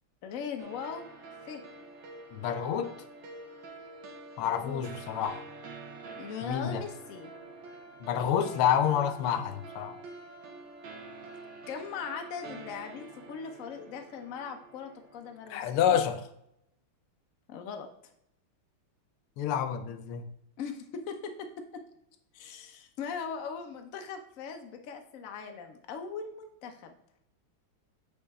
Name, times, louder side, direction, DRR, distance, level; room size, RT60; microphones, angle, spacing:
voice 1, 0.2-1.1 1.5-1.6 4.4-4.8 6.1-7.3 11.7-16.0 17.5-17.9 20.6-21.8 22.3-26.9, left 6 dB, 65° left, 5 dB, 0.8 m, -40 dB
sound 1, 0.6-15.9, right 3 dB, 65° right, 1.5 m, -47 dB
voice 2, 2.3-2.9 4.4-5.4 6.4-6.8 8.0-9.9 15.5-16.2 19.4-20.3, left 9 dB, 85° left, 9 dB, 1.6 m, -28 dB
8.4 x 4.3 x 3.5 m, 0.78 s
omnidirectional pair, 2.3 m